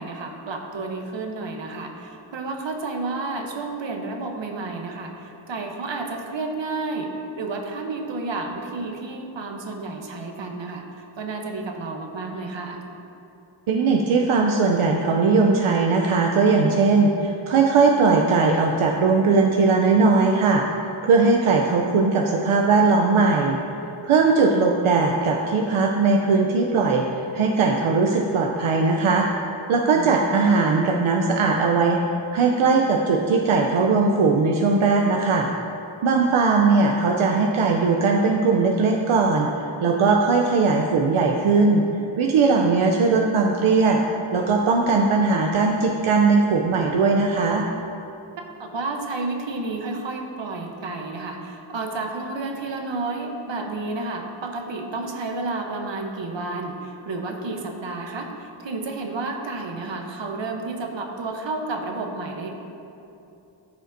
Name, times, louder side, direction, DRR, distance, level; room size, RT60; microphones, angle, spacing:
voice 1, 0.0-12.8 29.9-30.5 48.4-62.5, right 3 dB, 65° right, 3 dB, 1.0 m, -31 dB
voice 2, 13.7-20.6 21.0-23.6 24.0-29.3 29.7-32.0 32.3-35.5 36.0-41.8 42.2-44.0 44.3-47.7, right 4 dB, 85° right, 1 dB, 0.6 m, -19 dB
14.0 x 5.1 x 2.6 m, 2.8 s
cardioid pair, 60°, 48 cm